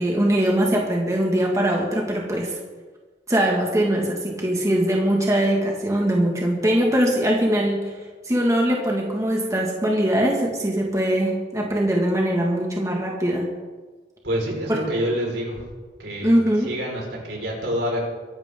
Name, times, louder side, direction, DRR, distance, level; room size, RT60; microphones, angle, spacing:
voice 1, 0.0-2.6 3.3-7.9 8.2-13.5 14.7-14.8 16.2-16.7, right 1 dB, 20° right, -1 dB, 2.0 m, -21 dB
voice 2, 14.2-15.6 16.0-16.3 16.6-18.1, equal, 80° right, -2 dB, 5.0 m, -27 dB
23.0 x 11.5 x 3.8 m, 1.4 s
head